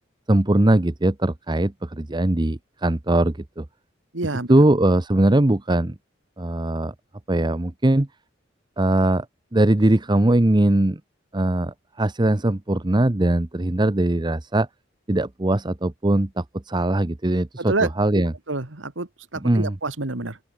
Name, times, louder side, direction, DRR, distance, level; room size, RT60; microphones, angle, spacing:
voice 1, 0.3-3.6 4.5-5.9 6.4-6.9 7.3-8.1 8.8-9.3 9.5-11.0 11.3-14.7 15.1-18.3 19.4-19.7, right 1 dB, 25° right, 0.8 m, -20 dB
voice 2, 4.1-4.5 17.6-20.4, right 2 dB, 80° right, 2.1 m, -28 dB
open air
head